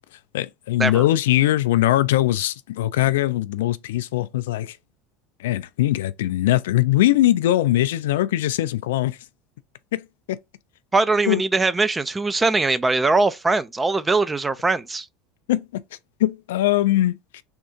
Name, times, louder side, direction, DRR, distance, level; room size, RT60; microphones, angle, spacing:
voice 1, 0.3-4.8 5.4-9.2 9.9-10.4 11.3-11.4 15.5-15.8 16.2-17.4, left 14 dB, 75° left, 0.3 m, -21 dB
voice 2, 10.9-15.1, right 3 dB, 15° right, 0.3 m, -21 dB
3.5 x 2.3 x 4.3 m
hypercardioid pair, 80°, 0 cm